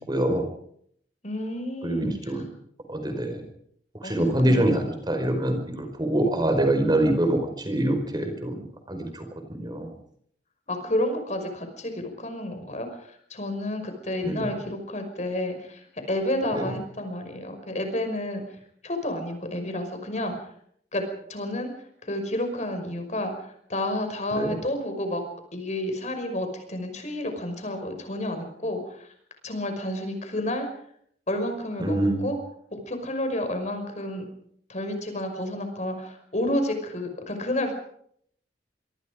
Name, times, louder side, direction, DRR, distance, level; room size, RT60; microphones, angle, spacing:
voice 1, 0.1-0.4 1.8-2.4 2.9-3.4 4.0-7.4 7.6-8.6 8.9-9.2 9.6-9.9 14.2-14.5 24.4-24.6 31.8-32.2, right 1 dB, 25° right, 5 dB, 5.0 m, -24 dB
voice 2, 1.2-2.4 4.0-4.7 10.7-18.4 18.8-20.5 20.9-21.0 21.3-21.7 22.0-25.2 25.5-29.1 29.4-30.7 31.3-32.4 32.7-34.3 34.7-37.7, left 1 dB, 40° left, 6 dB, 5.7 m, -30 dB
25.5 x 24.5 x 5.1 m, 0.66 s
head